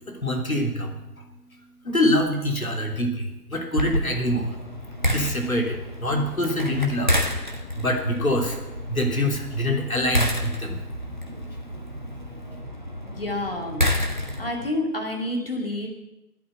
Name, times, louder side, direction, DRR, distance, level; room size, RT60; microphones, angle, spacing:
voice 1, 0.1-1.0 1.8-4.6 5.1-7.1 7.5-8.6 8.9-10.8, left 1 dB, 60° left, 3 dB, 3.1 m, -25 dB
sound 1, 3.8-14.7, equal, 30° right, 1.2 m, -29 dB
voice 2, 13.1-13.9 14.4-15.9, left 1 dB, 35° left, 1 dB, 2.5 m, -28 dB
12.0 x 8.5 x 8.9 m, 0.98 s
figure-of-eight pair, 175°, 47 cm